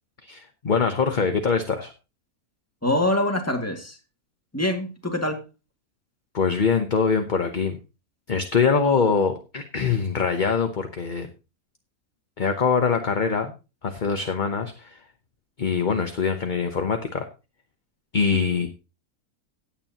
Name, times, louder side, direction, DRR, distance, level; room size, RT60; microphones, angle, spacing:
voice 1, 0.2-1.9 6.3-7.8 8.3-11.3 12.4-13.5 13.8-15.0 15.6-17.3 18.1-18.7, left 5 dB, 35° left, 1.0 m, -23 dB
voice 2, 2.8-4.0 4.5-5.4 18.3-18.4, left 1 dB, 10° left, 2.2 m, -24 dB
16.5 x 9.1 x 2.9 m
omnidirectional pair, 1.6 m